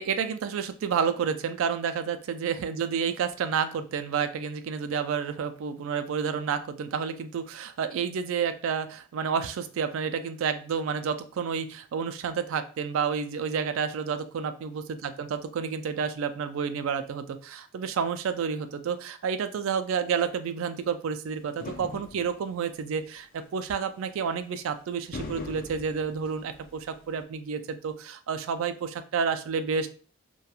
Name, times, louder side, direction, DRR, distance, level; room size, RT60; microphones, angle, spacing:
voice 1, 0.0-29.9, right 6 dB, 70° right, 10 dB, 0.3 m, -30 dB
sound 1, 21.6-22.6 23.6-23.7 24.9-27.1, left 2 dB, 40° left, 0.3 m, -41 dB
2.8 x 2.2 x 2.3 m, 0.39 s
head